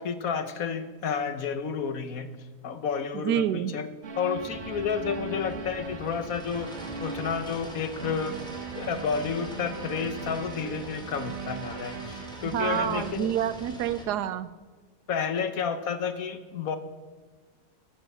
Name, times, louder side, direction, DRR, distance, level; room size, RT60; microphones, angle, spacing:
voice 1, 0.0-2.3 2.6-3.9 4.2-6.7 7.0-8.4 8.7-13.3 15.1-16.8, left 6 dB, 65° left, 10 dB, 1.3 m, -31 dB
voice 2, 3.1-3.7 12.5-14.5, right 10 dB, 85° right, 15 dB, 1.2 m, -28 dB
sound 1, 4.0-13.1, right 5 dB, 45° right, 1.3 m, -39 dB
sound 2, 4.4-14.0, equal, 5° left, 2.2 m, -44 dB
14.5 x 9.0 x 5.5 m, 1.4 s
omnidirectional pair, 1.7 m